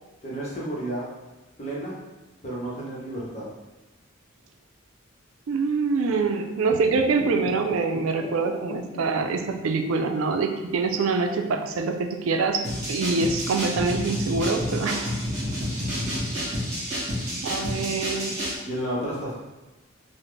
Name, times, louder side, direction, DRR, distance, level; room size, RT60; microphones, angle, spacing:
voice 1, 0.2-1.1 1.6-1.9 2.4-3.4 18.7-19.3, right 1 dB, 35° left, -6 dB, 0.9 m, -31 dB
voice 2, 5.5-15.1 17.4-18.5, right 4 dB, 85° right, 5 dB, 0.4 m, -25 dB
sound 1, 6.6-10.0 10.3-10.4, left 3 dB, 65° left, 0.4 m, -38 dB
sound 2, 12.6-18.6, equal, 35° right, 1.3 m, -29 dB
3.9 x 2.1 x 3.2 m, 1.1 s
head